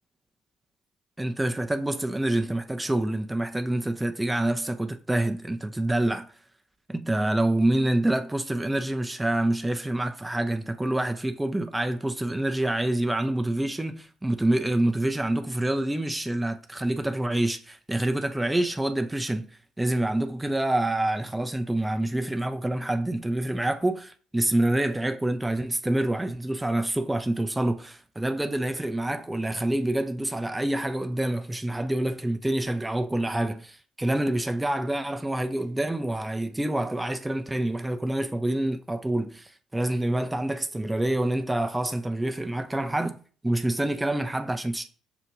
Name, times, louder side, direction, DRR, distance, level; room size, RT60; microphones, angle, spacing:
voice 1, 1.2-6.3 6.9-19.5 19.8-44.9, right 1 dB, 10° right, 0.5 m, -27 dB
5.9 x 2.5 x 3.0 m
figure-of-eight pair, 45°, 0 cm